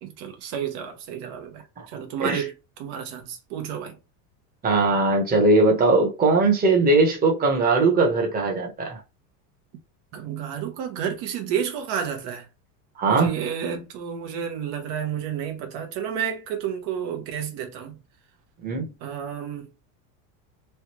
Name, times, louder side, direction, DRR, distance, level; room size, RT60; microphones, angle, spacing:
voice 1, 0.0-2.5 2.8-4.0 10.1-12.5 13.1-18.0 19.0-19.7, right 8 dB, 60° right, 0.8 m, -31 dB
voice 2, 4.6-9.0 13.0-13.3 18.6-18.9, right 3 dB, 20° right, 0.9 m, -20 dB
3.2 x 2.3 x 3.0 m
supercardioid pair, 135°, 46 cm